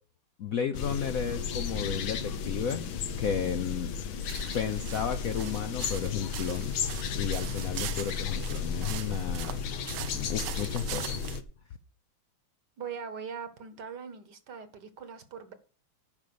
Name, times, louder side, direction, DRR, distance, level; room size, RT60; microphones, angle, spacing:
voice 1, 0.4-2.8 3.2-3.9 4.5-6.8 7.1-9.6 9.9-11.2, left 7 dB, 65° left, 0.9 m, -33 dB
sound 1, 0.7-11.4, left 6 dB, 80° left, 1.8 m, -34 dB
sound 2, 4.2-11.4, right 12 dB, 80° right, 1.5 m, -42 dB
voice 2, 12.8-15.5, right 6 dB, 60° right, 1.7 m, -41 dB
10.5 x 5.3 x 6.8 m
omnidirectional pair, 2.2 m